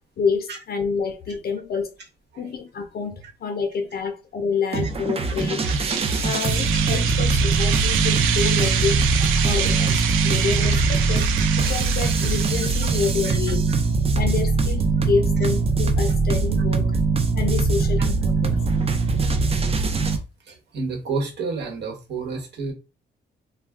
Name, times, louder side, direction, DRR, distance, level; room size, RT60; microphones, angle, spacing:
voice 1, 0.2-1.9 2.4-5.8 6.2-9.0 9.4-11.3 11.6-13.7 14.1-17.0 17.3-18.6, left 5 dB, 50° left, 0.5 m, -28 dB
sound 1, 4.7-20.2, right 4 dB, 30° right, 0.5 m, -22 dB
sound 2, 5.4-13.3, right 9 dB, 90° right, 0.5 m, -27 dB
voice 2, 20.4-22.7, right 4 dB, 60° right, 1.2 m, -31 dB
2.3 x 2.2 x 3.5 m
cardioid pair, 90°, 20 cm